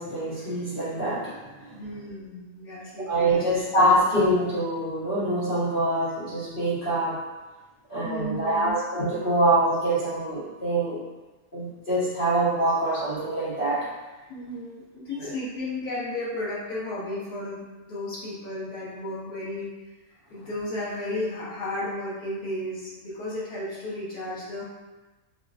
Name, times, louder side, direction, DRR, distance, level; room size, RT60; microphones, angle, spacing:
voice 1, 0.0-1.7 3.1-7.2 7.9-11.0 11.5-13.9 15.2-15.3, right 1 dB, 40° left, -11 dB, 1.0 m, -25 dB
voice 2, 1.7-3.5 8.0-8.8 14.3-19.7 20.3-24.6, left 1 dB, 85° left, -8 dB, 1.7 m, -33 dB
5.4 x 2.2 x 2.4 m, 1.2 s
omnidirectional pair, 1.5 m